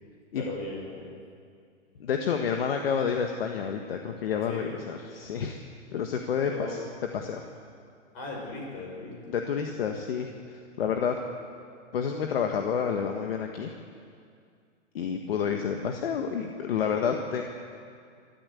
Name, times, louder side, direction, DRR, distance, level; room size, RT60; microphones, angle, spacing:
voice 1, 0.3-1.2 4.5-4.8 6.5-6.8 8.1-9.3, left 3 dB, 25° left, -1 dB, 5.8 m, -37 dB
voice 2, 2.0-5.6 5.9-6.8 7.1-7.5 9.3-11.2 11.9-13.7 14.9-17.4, left 7 dB, 50° left, 4 dB, 1.6 m, -29 dB
26.5 x 13.5 x 8.3 m, 2.3 s
hypercardioid pair, 170°, 38 cm